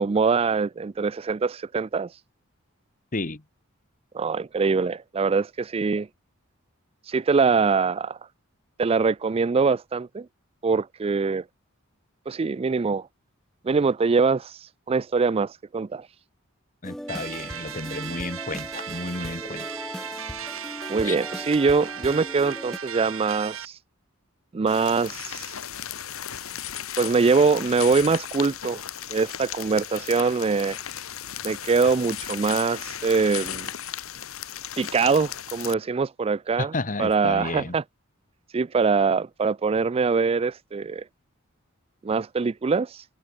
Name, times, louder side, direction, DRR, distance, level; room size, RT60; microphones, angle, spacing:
voice 1, 0.0-2.1 4.1-6.1 7.1-8.2 8.8-10.3 10.6-11.4 12.3-13.1 13.6-14.6 14.9-16.1 20.9-23.8 24.5-25.5 27.0-28.8 29.1-30.8 31.4-33.7 34.8-36.7 37.0-37.8 38.5-41.0 42.0-43.0, right 4 dB, 30° right, 0.4 m, -23 dB
voice 2, 3.1-3.4 16.8-19.7 21.0-21.2 36.6-37.8, left 2 dB, 40° left, 1.5 m, -32 dB
sound 1, 16.8-22.8, equal, ahead, 1.6 m, -38 dB
sound 2, 17.1-23.7, right 8 dB, 75° right, 4.6 m, -37 dB
sound 3, 24.7-35.7, left 10 dB, 85° left, 1.7 m, -36 dB
head